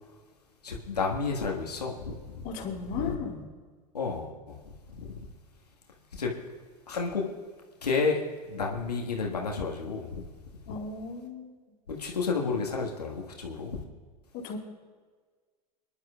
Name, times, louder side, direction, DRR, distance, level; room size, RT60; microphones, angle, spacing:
voice 1, 0.6-2.2 2.9-3.2 3.9-4.6 5.0-5.2 6.2-6.3 6.9-7.3 7.8-10.2 10.7-10.8 11.9-13.8, left 4 dB, 85° left, 0 dB, 1.7 m, -31 dB
voice 2, 2.4-3.5 10.7-11.6 14.3-14.6, left 5 dB, 45° left, -3 dB, 3.4 m, -36 dB
27.5 x 11.0 x 2.4 m, 1.5 s
hypercardioid pair, 85°, 20 cm